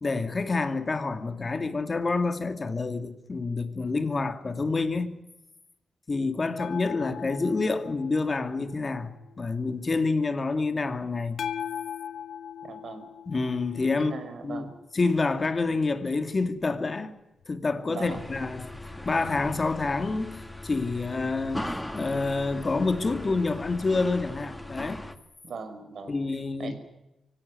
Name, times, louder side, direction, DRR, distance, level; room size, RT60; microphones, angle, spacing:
voice 1, 0.0-5.2 6.1-11.4 13.3-14.1 14.4-14.7 14.9-17.1 17.5-21.7 21.9-25.0 26.1-26.7, left 3 dB, 30° left, 2.5 m, -28 dB
sound 1, 6.6-9.4 11.4-14.6 17.4-17.5, left 8 dB, 75° left, 1.7 m, -39 dB
voice 2, 12.6-13.1 13.9-14.8 17.9-18.2 25.4-26.2 26.6-26.7, right 4 dB, 65° right, 5.2 m, -39 dB
sound 2, 18.0-25.2, left 1 dB, 5° left, 1.8 m, -39 dB
24.5 x 17.5 x 9.7 m
cardioid pair, 110°, 0 cm